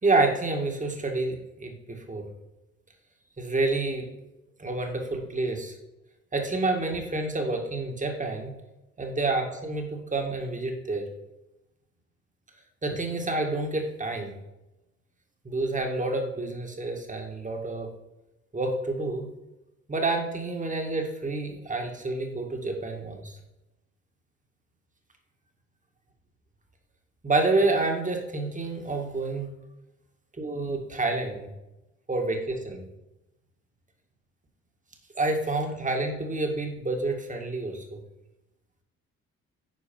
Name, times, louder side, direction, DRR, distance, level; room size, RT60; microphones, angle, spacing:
voice 1, 0.0-2.3 3.4-4.1 4.6-5.7 6.3-8.5 9.0-11.1 12.8-14.3 15.4-17.9 18.5-19.3 19.9-23.4 27.2-29.5 30.4-31.5 32.1-32.9 35.2-38.0, right 2 dB, 25° right, 3 dB, 2.0 m, -28 dB
10.0 x 4.7 x 5.3 m, 0.97 s
supercardioid pair, 60°, 32 cm